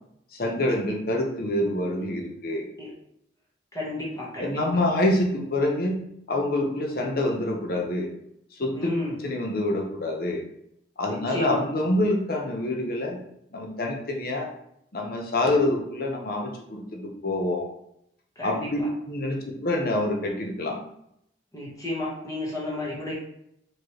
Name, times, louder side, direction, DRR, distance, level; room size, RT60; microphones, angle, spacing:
voice 1, 0.3-2.7 4.4-6.0 6.3-8.1 8.6-8.9 9.2-10.4 11.0-13.2 13.5-14.5 14.9-17.7 18.4-18.8 19.1-20.8, left 1 dB, 55° left, 1 dB, 0.8 m, -26 dB
voice 2, 3.7-4.8 8.7-9.2 11.0-11.6 18.4-18.9 21.5-23.1, left 1 dB, 20° left, -4 dB, 1.3 m, -32 dB
4.3 x 3.1 x 3.1 m, 0.75 s
head